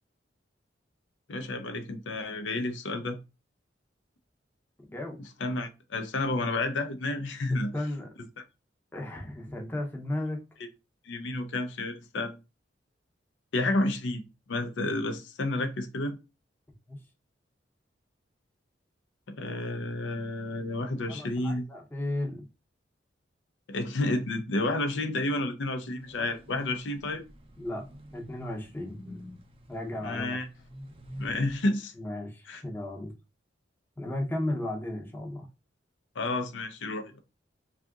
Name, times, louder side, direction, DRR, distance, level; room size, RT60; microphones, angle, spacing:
voice 1, 1.3-3.2 5.4-7.7 11.1-12.3 13.5-14.2 14.5-16.2 19.3-21.6 23.7-27.2 30.0-30.5 31.2-31.9 32.5-32.6 36.2-37.1, left 2 dB, 75° left, 0.5 m, -30 dB
voice 2, 4.9-5.2 7.7-8.1 8.9-10.4 16.9-17.0 21.1-22.5 27.6-27.8 28.1-29.4 29.7-30.4 32.0-33.1 34.0-35.5, left 1 dB, 10° left, 0.6 m, -35 dB
sound 1, 26.0-31.6, equal, 30° right, 0.5 m, -48 dB
2.7 x 2.4 x 3.5 m
head